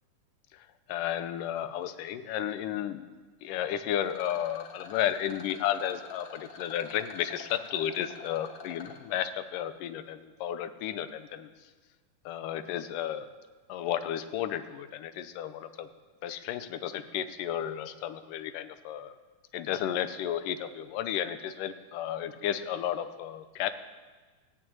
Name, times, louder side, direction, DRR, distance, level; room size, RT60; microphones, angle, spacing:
voice 1, 0.9-3.0 3.4-11.5 12.3-13.3 13.7-15.9 16.2-19.1 19.5-23.7, left 10 dB, 85° left, 11 dB, 2.4 m, -33 dB
Rattle, 4.0-9.0, left 5 dB, 45° left, 1.8 m, -47 dB
16.0 x 9.4 x 8.7 m, 1.4 s
omnidirectional pair, 3.7 m